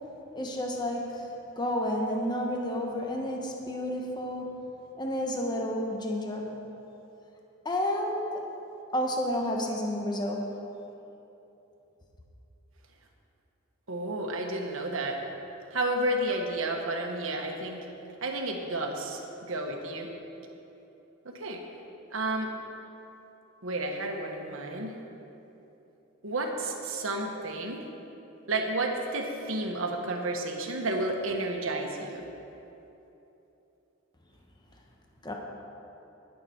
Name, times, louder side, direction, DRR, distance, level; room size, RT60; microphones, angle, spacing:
voice 1, 0.3-1.3 1.6-4.5 5.0-6.5 7.6-8.3 8.9-10.5 35.2-35.3, left 1 dB, 20° left, 0 dB, 1.0 m, -30 dB
voice 2, 13.9-15.2 15.7-17.8 18.2-20.1 21.2-21.6 22.1-22.5 23.6-25.0 26.2-27.8 28.5-32.2, right 2 dB, 70° right, 1 dB, 1.3 m, -31 dB
19.0 x 6.8 x 4.4 m, 3.0 s
head